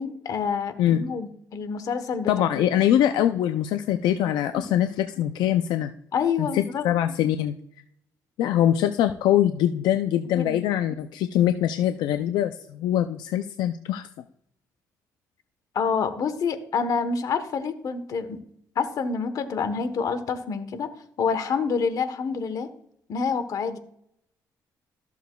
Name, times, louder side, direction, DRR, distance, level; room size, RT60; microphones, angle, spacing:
voice 1, 0.0-2.7 4.6-4.7 6.1-6.8 10.3-10.6 15.7-18.4 18.8-22.7 23.1-23.8, left 5 dB, 60° left, 10 dB, 1.1 m, -27 dB
voice 2, 2.3-5.9 6.4-7.5 8.4-14.1, left 11 dB, 85° left, 8 dB, 0.4 m, -23 dB
13.5 x 7.0 x 2.3 m, 0.71 s
cardioid pair, 95°, 7 cm